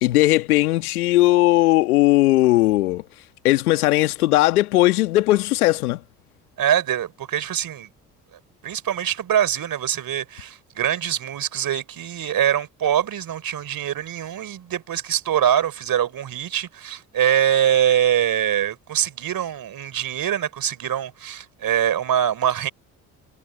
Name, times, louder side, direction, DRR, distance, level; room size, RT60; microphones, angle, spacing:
voice 1, 0.0-3.0 3.4-6.0, left 17 dB, 85° left, 1.6 m, -18 dB
voice 2, 6.6-7.9 8.6-22.7, right 10 dB, 50° right, 3.8 m, -23 dB
hypercardioid pair, 55°, 44 cm